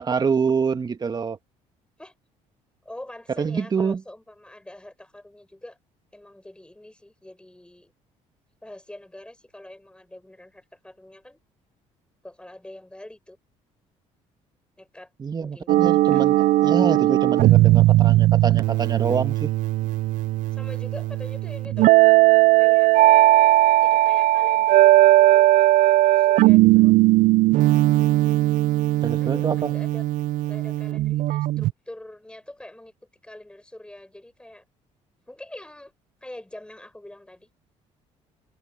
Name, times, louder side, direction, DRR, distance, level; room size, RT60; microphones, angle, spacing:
voice 1, 0.0-1.4 3.4-4.0 15.2-16.3 16.6-19.5 29.0-29.7, right 5 dB, 30° right, 1.5 m, -25 dB
voice 2, 2.8-5.8 6.1-7.9 8.6-11.4 12.2-13.4 14.8-15.1 15.4-15.7 16.1-16.2 20.5-21.9 22.6-22.9 23.8-26.9 29.1-30.0 30.4-32.9 33.2-34.6 35.3-35.9 36.2-37.5, left 1 dB, 5° left, 6.0 m, -43 dB
sound 1, 15.7-31.7, right 17 dB, 75° right, 0.5 m, -18 dB
cardioid pair, 95°, 14 cm